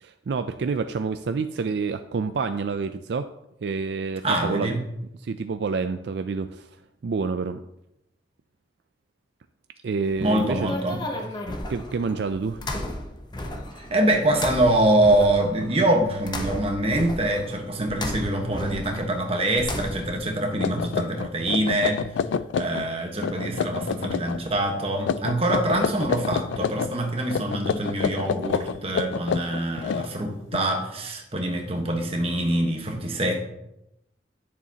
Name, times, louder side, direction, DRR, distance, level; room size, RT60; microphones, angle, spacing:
voice 1, 0.0-3.3 3.6-4.7 5.2-6.7 7.0-7.6 9.8-10.7 11.7-12.6, right 4 dB, 65° right, 9 dB, 0.4 m, -28 dB
voice 2, 4.2-4.8 10.2-11.0 13.8-22.0 22.6-33.4, right 1 dB, 35° right, 2 dB, 1.3 m, -24 dB
sound 1, 10.1-20.3, left 1 dB, 25° left, 0.9 m, -35 dB
sound 2, 20.2-20.3 20.6-22.9 23.2-24.4 25.0-26.9 27.3-30.6, left 6 dB, 85° left, 0.3 m, -28 dB
11.0 x 6.9 x 2.9 m, 0.86 s
head